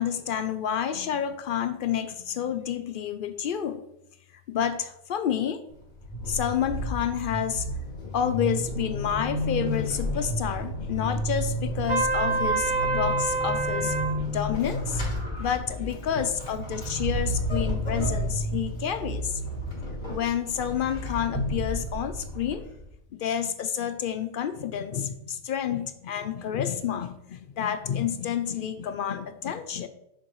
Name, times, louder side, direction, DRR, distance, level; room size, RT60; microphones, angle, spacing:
voice 1, 0.0-3.8 4.5-5.6 6.3-7.7 8.0-19.4 20.1-22.6 23.1-29.9, left 9 dB, 70° left, 10 dB, 0.5 m, -29 dB
Vehicle / Accelerating revving vroom / Squeak, 5.7-22.9, equal, 30° left, 2.6 m, -31 dB
Trumpet, 11.9-14.1, right 4 dB, 55° right, 2.7 m, -26 dB
7.0 x 6.7 x 3.1 m, 0.79 s
omnidirectional pair, 1.4 m